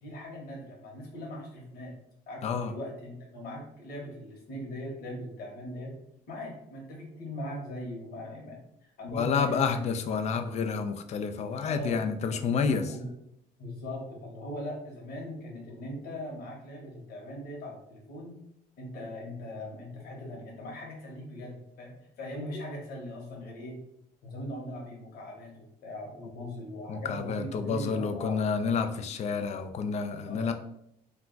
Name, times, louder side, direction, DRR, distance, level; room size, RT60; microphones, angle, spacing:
voice 1, 0.0-1.9 2.3-5.9 6.3-9.8 11.6-12.0 12.3-12.6 12.9-13.1 13.6-18.4 18.8-21.9 22.2-23.8 24.2-28.4 30.3-30.5, left 1 dB, 65° left, -1 dB, 1.1 m, -40 dB
voice 2, 2.4-2.7 9.1-13.0 22.5-22.6 26.9-30.5, left 5 dB, 40° left, 8 dB, 0.4 m, -29 dB
2.3 x 2.3 x 3.8 m, 0.75 s
cardioid pair, 110°, 17 cm